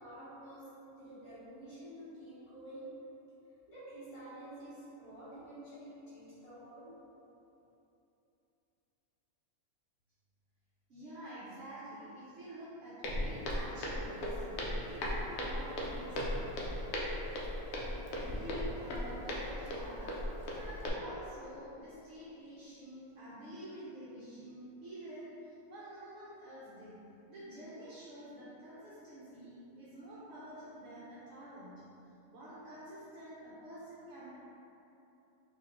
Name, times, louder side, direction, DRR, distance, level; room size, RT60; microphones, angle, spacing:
voice 1, 0.0-2.9 3.7-7.0, right 1 dB, 20° left, -13 dB, 1.4 m, -49 dB
voice 2, 10.9-16.3 18.2-20.2 20.5-31.7 32.3-34.4, right 1 dB, 60° right, -10 dB, 1.0 m, -48 dB
Walk footsteps, 13.0-20.9, left 1 dB, 60° left, 0.7 m, -37 dB
3.9 x 2.8 x 2.9 m, 3.0 s
omnidirectional pair, 1.5 m